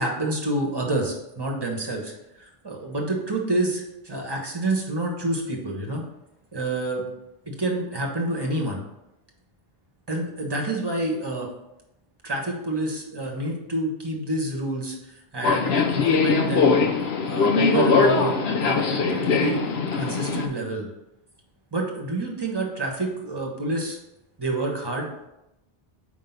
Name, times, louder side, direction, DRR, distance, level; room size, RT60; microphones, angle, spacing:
voice 1, 0.0-6.0 6.5-7.1 7.4-8.8 10.1-11.5 12.2-16.8 17.2-19.6 19.9-20.9 21.7-24.0 24.4-25.1, right 2 dB, 25° right, 0 dB, 1.1 m, -28 dB
Subway metro underground, 15.4-20.5, left 5 dB, 85° left, 0.9 m, -21 dB
4.9 x 3.7 x 5.7 m, 0.89 s
omnidirectional pair, 1.0 m